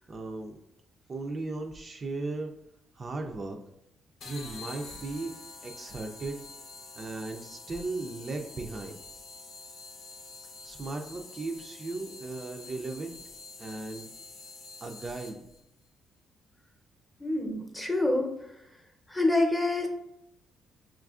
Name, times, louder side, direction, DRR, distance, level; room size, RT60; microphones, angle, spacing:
voice 1, 0.1-0.5 1.1-2.5 2.9-3.6 4.2-5.3 5.6-6.4 7.0-9.0 10.6-13.2 13.6-14.1 14.8-15.4, right 3 dB, 40° right, 3 dB, 0.4 m, -36 dB
sound 1, 4.2-15.6, left 4 dB, 75° left, 0.7 m, -47 dB
voice 2, 17.2-18.3 19.1-19.9, left 2 dB, 15° left, 2 dB, 0.7 m, -26 dB
5.7 x 2.4 x 2.4 m, 0.78 s
cardioid pair, 90°, 0 cm